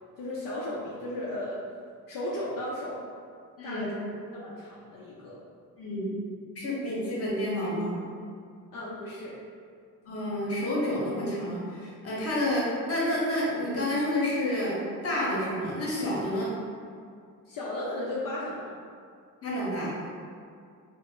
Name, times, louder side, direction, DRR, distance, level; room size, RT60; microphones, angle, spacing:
voice 1, 0.2-1.6 2.1-3.0 3.6-4.1 4.3-5.3 8.7-9.3 17.5-18.8, left 1 dB, 75° left, -6 dB, 0.5 m, -35 dB
voice 2, 5.8-6.1 6.6-8.0 10.0-14.8 15.0-16.5 19.4-20.0, left 1 dB, 45° left, -6 dB, 0.9 m, -29 dB
2.5 x 2.0 x 3.5 m, 2.2 s
cardioid pair, 110°, 34 cm